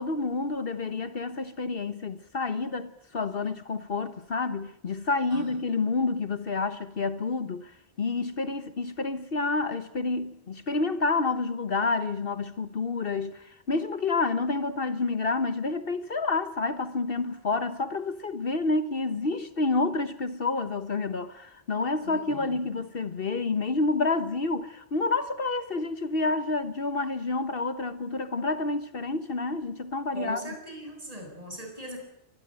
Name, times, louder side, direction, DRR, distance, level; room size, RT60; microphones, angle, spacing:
voice 1, 0.0-30.6, left 3 dB, 60° left, 1.4 m, -29 dB
voice 2, 22.0-22.5 30.1-32.0, right 1 dB, 35° right, 7.7 m, -40 dB
25.0 x 20.0 x 9.0 m
omnidirectional pair, 1.1 m